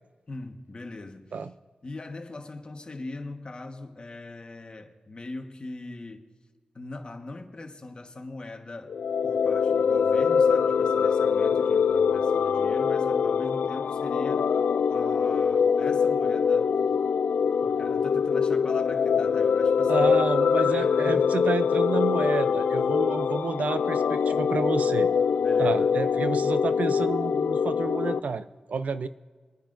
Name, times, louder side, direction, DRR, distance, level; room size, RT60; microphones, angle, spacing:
voice 1, 0.3-1.4 1.8-6.3 6.7-9.0 9.2-14.5 14.9-16.8 17.6-20.2 20.7-21.4 25.4-26.0, left 2 dB, 40° left, 1.3 m, -40 dB
sound 1, 8.9-28.2, left 6 dB, 80° left, 0.4 m, -24 dB
voice 2, 19.9-25.1 25.6-29.1, right 4 dB, 70° right, 0.5 m, -30 dB
27.0 x 10.0 x 2.6 m
wide cardioid pair, 80°, 3 cm